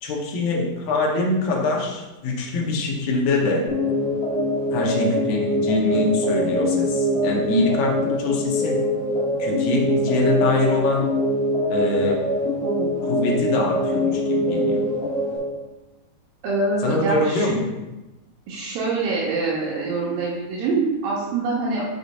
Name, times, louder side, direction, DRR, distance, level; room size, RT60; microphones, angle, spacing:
voice 1, 0.0-3.6 4.7-8.9 9.4-11.1 11.7-12.2 13.1-14.8 16.8-17.7, left 2 dB, 70° left, -1 dB, 2.6 m, -24 dB
sound 1, 3.7-15.4, left 1 dB, 35° left, 2.2 m, -23 dB
voice 2, 16.4-17.5 18.5-21.8, right 3 dB, 70° right, -6 dB, 2.6 m, -25 dB
6.5 x 4.9 x 4.1 m, 1.0 s
omnidirectional pair, 4.7 m